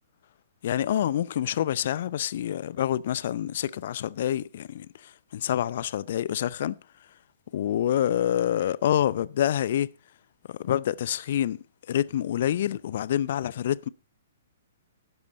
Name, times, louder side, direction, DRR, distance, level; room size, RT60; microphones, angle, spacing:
voice 1, 0.6-6.8 7.5-9.9 10.5-11.6 11.9-13.9, left 11 dB, 50° left, 0.6 m, -27 dB
12.0 x 10.5 x 3.9 m
figure-of-eight pair, 115°, 0 cm